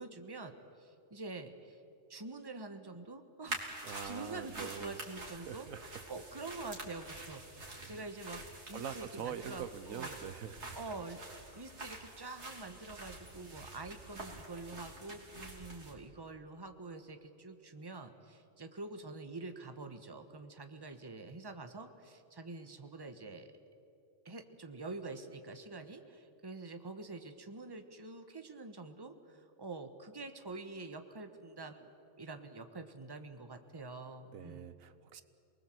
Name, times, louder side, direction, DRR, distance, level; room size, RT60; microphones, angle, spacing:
voice 1, 0.0-1.8 2.1-5.7 6.1-10.2 10.7-23.5 24.2-31.9 32.2-34.7, right 3 dB, 20° right, 7 dB, 1.2 m, -46 dB
sound 1, 3.5-15.9, right 2 dB, 55° right, 3.5 m, -47 dB
voice 2, 3.8-5.0 5.3-6.0 7.8-8.0 8.7-10.8 34.3-35.2, right 8 dB, 85° right, 12 dB, 1.4 m, -44 dB
28.0 x 20.0 x 7.8 m, 2.7 s
omnidirectional pair, 1.4 m